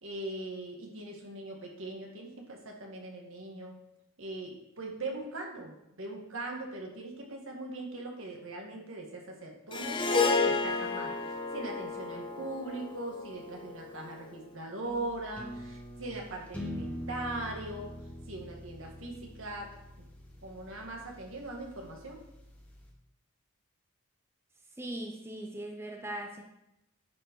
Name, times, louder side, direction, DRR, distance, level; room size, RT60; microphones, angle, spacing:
voice 1, 0.0-3.8 4.2-17.9 18.3-19.7 20.0-20.1 20.4-22.2, right 2 dB, 70° right, 0 dB, 1.9 m, -40 dB
Harp, 9.7-14.1, left 4 dB, 20° left, 0.8 m, -31 dB
sound 1, 14.8-22.9, equal, 5° left, 1.1 m, -45 dB
voice 2, 24.8-26.4, right 1 dB, 10° right, 1 dB, 0.6 m, -39 dB
10.5 x 4.8 x 4.7 m, 0.88 s
head